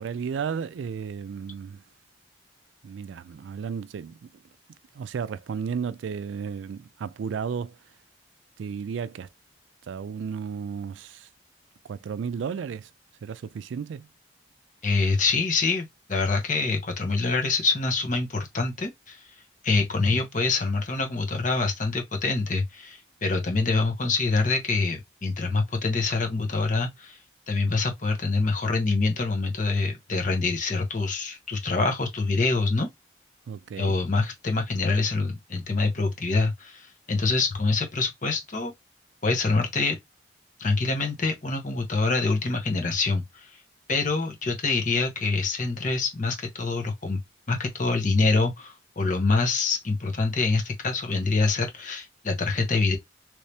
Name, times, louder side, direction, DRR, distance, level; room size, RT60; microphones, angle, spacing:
voice 1, 0.0-1.8 2.8-4.4 4.9-7.8 8.6-9.3 9.8-11.3 11.8-12.9 13.2-14.1 33.5-34.0, right 6 dB, 85° right, 0.3 m, -33 dB
voice 2, 14.8-19.2 19.6-27.2 27.5-32.9 33.8-38.7 39.2-40.0 40.6-43.5 43.9-47.2 47.5-53.0, left 3 dB, 45° left, 0.9 m, -25 dB
3.1 x 2.8 x 3.3 m
head